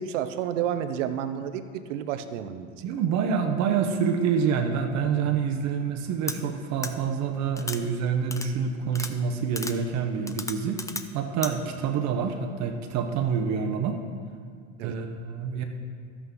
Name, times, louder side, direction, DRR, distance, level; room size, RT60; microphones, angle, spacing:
voice 1, 0.0-2.7 14.8-14.9, right 9 dB, 75° right, 10 dB, 0.8 m, -30 dB
voice 2, 2.8-10.8 11.1-14.0 14.8-15.6, right 6 dB, 50° right, 5 dB, 0.9 m, -27 dB
sound 1, 6.3-6.4 6.8-6.9 7.6-7.8 8.3-8.5 8.9-9.1 9.6-9.7 10.3-11.0 11.4-11.5, left 3 dB, 10° left, 0.4 m, -33 dB
12.5 x 8.2 x 3.8 m, 2.2 s
hypercardioid pair, 95°, 37 cm